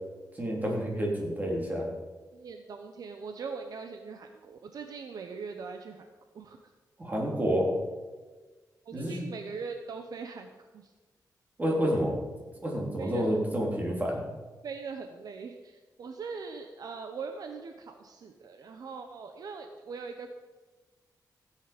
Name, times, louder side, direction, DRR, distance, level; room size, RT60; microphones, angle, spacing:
voice 1, 0.4-1.9 7.0-7.7 8.9-9.2 11.6-12.2 12.6-14.2, equal, 25° right, -2 dB, 3.4 m, -29 dB
voice 2, 2.3-6.1 6.3-6.6 8.9-10.9 13.0-13.3 14.6-20.3, right 5 dB, 65° right, 5 dB, 0.9 m, -41 dB
15.5 x 8.7 x 5.2 m, 1.3 s
wide cardioid pair, 135°, 7 cm